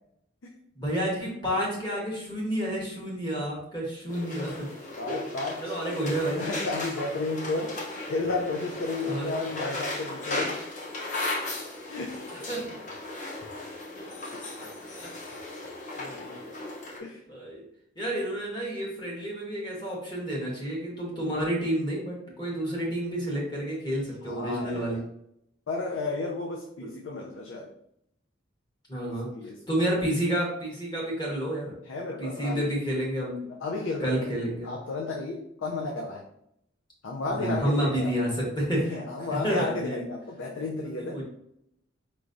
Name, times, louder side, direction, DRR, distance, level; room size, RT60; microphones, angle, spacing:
voice 1, 0.8-4.7 5.6-6.4 9.0-9.3 12.5-12.7 14.0-14.2 15.9-16.5 17.3-17.6 18.0-25.0 26.8-26.9 28.9-29.3 29.7-31.7 32.2-33.4 34.0-34.7 37.3-39.0 39.4-40.1 41.1-41.2, right 1 dB, 20° left, -3 dB, 1.2 m, -30 dB
sound 1, 4.1-17.0, left 2 dB, 40° left, 0.7 m, -36 dB
voice 2, 5.0-5.9 6.4-7.8 8.1-10.6 11.9-12.2 17.0-17.2 24.2-25.0 25.7-27.7 29.0-29.8 31.8-32.8 33.4-34.3 34.6-36.2 37.0-38.2 38.7-41.2, left 3 dB, 70° left, 0 dB, 0.5 m, -33 dB
4.6 x 3.0 x 2.6 m, 0.75 s
head